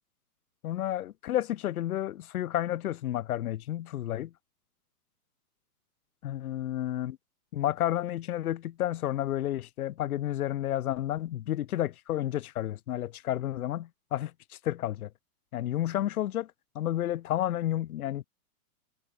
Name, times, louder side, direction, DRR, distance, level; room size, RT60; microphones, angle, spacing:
voice 1, 0.6-4.3 6.2-7.2 7.5-15.1 15.5-18.2, left 13 dB, 70° left, 0.8 m, -31 dB
hypercardioid pair, 160°, 45 cm